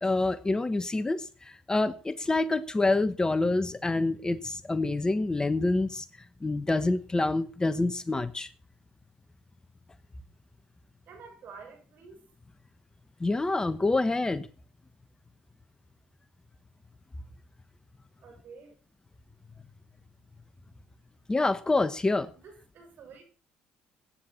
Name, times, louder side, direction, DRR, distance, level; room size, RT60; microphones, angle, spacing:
voice 1, 0.0-6.1 6.4-8.5 13.2-14.5 21.3-22.3, left 2 dB, 20° left, 1.1 m, -27 dB
voice 2, 11.1-12.3 18.2-18.7 22.4-23.2, right 5 dB, 60° right, 6.9 m, -49 dB
20.0 x 9.7 x 4.1 m
supercardioid pair, 65°, 4 cm